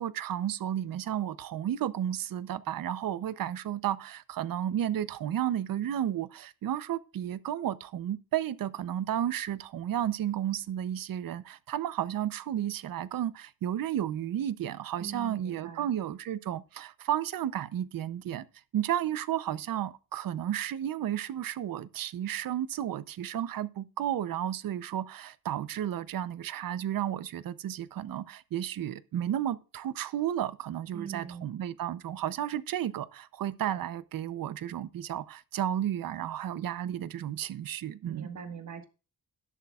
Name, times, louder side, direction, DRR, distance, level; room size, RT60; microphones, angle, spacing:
voice 1, 0.0-18.5 18.7-38.3, right 11 dB, 65° right, 0.7 m, -32 dB
voice 2, 15.0-15.9 30.9-31.5 38.1-38.8, right 7 dB, 50° right, 1.6 m, -42 dB
12.0 x 11.0 x 2.4 m
wide cardioid pair, 170°, 36 cm